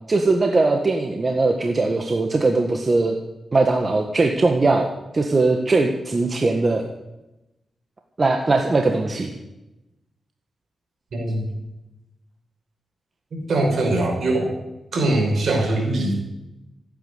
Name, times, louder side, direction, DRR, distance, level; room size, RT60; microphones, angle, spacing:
voice 1, 0.1-3.2 3.5-4.9 5.1-6.9 8.2-9.3, right 3 dB, 45° right, 4 dB, 1.6 m, -20 dB
voice 2, 11.1-11.4 13.3-14.5 14.9-16.2, right 2 dB, 75° right, 1 dB, 5.4 m, -21 dB
15.0 x 9.3 x 8.1 m, 0.97 s
cardioid pair, 55°, 0 cm